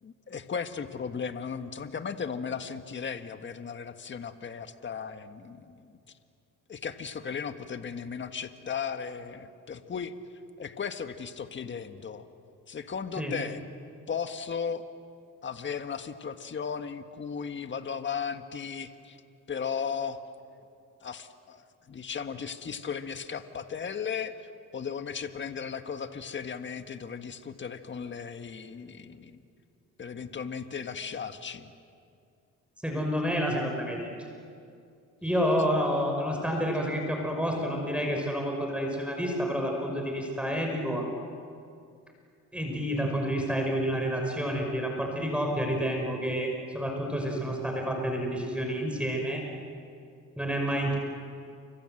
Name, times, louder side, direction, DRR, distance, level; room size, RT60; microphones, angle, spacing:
voice 1, 0.0-5.9 6.7-10.1 10.6-12.3 12.7-13.6 14.1-14.8 15.4-19.2 19.5-20.2 21.0-29.4 30.0-31.7, left 6 dB, 40° left, 8 dB, 1.6 m, -36 dB
voice 2, 32.8-34.1 35.2-41.1 42.5-49.4 50.4-51.0, equal, 5° right, 1 dB, 5.5 m, -29 dB
29.0 x 25.0 x 7.8 m, 2.4 s
cardioid pair, 90°, 30 cm